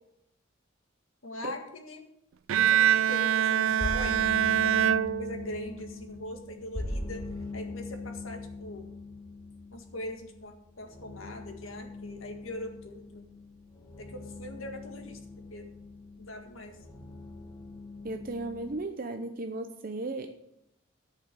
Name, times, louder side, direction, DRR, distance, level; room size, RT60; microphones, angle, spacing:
voice 1, 1.2-2.0 2.6-4.2 4.6-4.9 5.2-7.2 7.5-8.9 9.7-13.2 14.0-15.2 15.5-15.7 16.2-16.8, left 1 dB, 85° left, 5 dB, 1.8 m, -41 dB
Bowed string instrument, 2.5-5.8, right 9 dB, 80° right, 0.4 m, -25 dB
sound 1, 3.6-18.7, left 2 dB, 15° left, 1.8 m, -41 dB
voice 2, 18.0-20.3, right 2 dB, 45° right, 6 dB, 0.7 m, -35 dB
9.6 x 6.8 x 7.5 m, 0.80 s
head